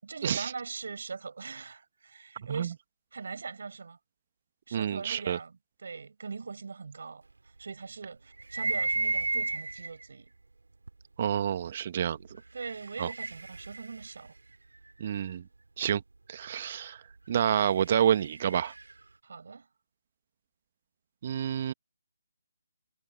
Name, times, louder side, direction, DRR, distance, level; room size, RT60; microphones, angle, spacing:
voice 1, 0.0-2.7 3.1-4.0 4.7-7.2 7.6-10.3 12.5-14.4 19.2-19.7, right 4 dB, 60° right, 4.7 m, -41 dB
voice 2, 4.7-5.4 11.2-12.2 13.0-13.1 15.0-15.5 15.8-16.0 16.3-17.0 17.3-18.7 21.2-21.7, right 9 dB, 40° right, 1.5 m, -28 dB
sound 1, 8.4-10.1 10.9-11.0 12.3-15.2 17.3-19.0, right 3 dB, 75° right, 3.7 m, -34 dB
figure-of-eight pair, 150°, 0 cm